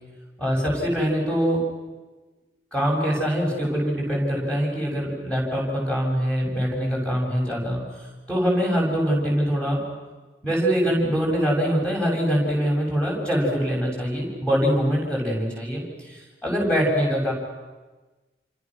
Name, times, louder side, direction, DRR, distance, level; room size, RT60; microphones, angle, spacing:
voice 1, 0.4-1.6 2.7-7.8 8.3-9.8 10.4-17.3, equal, 5° left, -2 dB, 7.1 m, -23 dB
28.5 x 26.0 x 6.3 m, 1.2 s
head